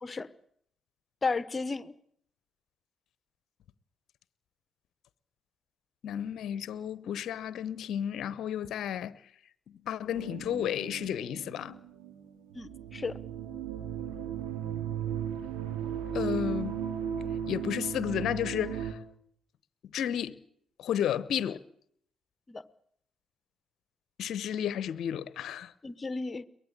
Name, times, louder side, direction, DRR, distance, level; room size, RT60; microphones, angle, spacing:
voice 1, 1.2-1.9 12.5-13.2 22.5-22.6 25.8-26.5, left 4 dB, 30° left, 1.2 m, -33 dB
voice 2, 6.0-9.2 9.9-11.8 16.1-16.8 17.5-19.0 19.9-20.4 20.8-21.6 24.2-25.7, left 10 dB, 60° left, 0.9 m, -32 dB
sound 1, 10.1-18.9, right 8 dB, 70° right, 3.0 m, -36 dB
23.0 x 19.0 x 8.5 m
hypercardioid pair, 45°, 0 cm